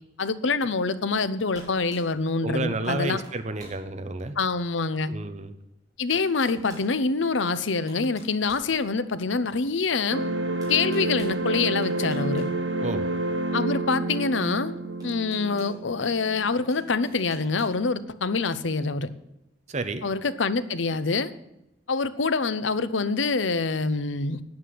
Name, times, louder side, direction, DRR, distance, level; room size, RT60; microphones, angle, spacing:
voice 1, 0.2-3.2 4.4-5.1 6.0-10.2 10.7-12.4 13.5-14.7 15.0-19.1 20.0-21.3 21.9-24.4, left 4 dB, 80° left, 14 dB, 0.8 m, -26 dB
sound 1, 1.1-1.3 1.5-2.1 2.8-3.0 3.2-3.8 4.4-4.5 5.6-5.7 6.1-6.9 7.6-9.2 10.6-11.4 11.8-12.5 12.8-12.9 14.4-14.5 15.0-15.8 16.7-17.8, right 1 dB, 20° right, 4.5 m, -49 dB
voice 2, 2.4-4.3 5.1-5.5 12.8-13.0 19.7-20.1, right 2 dB, 35° right, 8 dB, 0.8 m, -30 dB
sound 2, 10.1-17.1, right 2 dB, 70° right, 1.1 m, -29 dB
9.8 x 9.5 x 7.8 m, 0.86 s
head